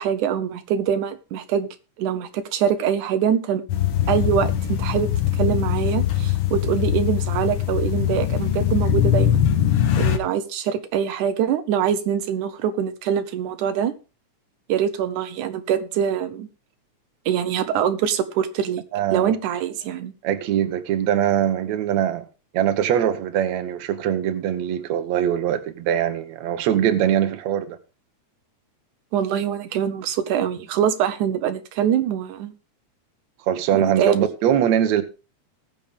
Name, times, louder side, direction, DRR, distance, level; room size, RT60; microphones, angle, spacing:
voice 1, 0.0-1.7 2.0-3.6 4.1-9.5 10.0-13.9 14.7-16.5 17.3-18.8 19.1-20.1 29.1-32.5 33.7-34.3, right 8 dB, 85° right, 2.5 m, -24 dB
sound 1, 3.7-10.2, left 10 dB, 60° left, 1.9 m, -21 dB
voice 2, 18.9-19.3 20.2-22.3 22.5-27.8 33.5-35.0, right 10 dB, 70° right, 2.3 m, -22 dB
20.0 x 7.2 x 3.5 m
omnidirectional pair, 3.4 m